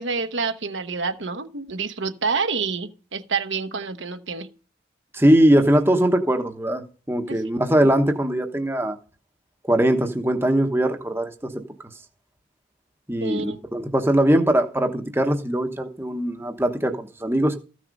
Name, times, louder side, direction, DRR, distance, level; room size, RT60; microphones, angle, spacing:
voice 1, 0.0-4.5 7.3-7.4 13.2-13.6, right 4 dB, 75° right, 1.1 m, -28 dB
voice 2, 5.1-6.8 7.1-9.0 9.7-11.5 13.1-17.5, right 1 dB, 10° right, 1.0 m, -21 dB
14.5 x 6.2 x 5.3 m
head